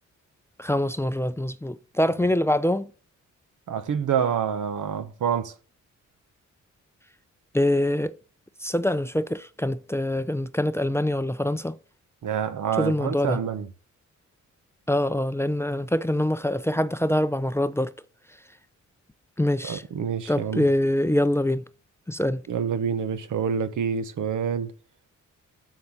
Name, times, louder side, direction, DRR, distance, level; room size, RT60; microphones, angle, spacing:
voice 1, 0.6-2.9 7.5-8.1 8.6-11.8 12.8-13.4 14.9-17.9 19.4-19.8 20.3-21.6 22.1-22.4, left 1 dB, 10° left, 0.5 m, -24 dB
voice 2, 3.7-5.5 12.2-13.7 19.6-20.7 22.5-24.7, right 7 dB, 80° right, 1.1 m, -27 dB
7.7 x 6.5 x 7.3 m
cardioid pair, 80°, 31 cm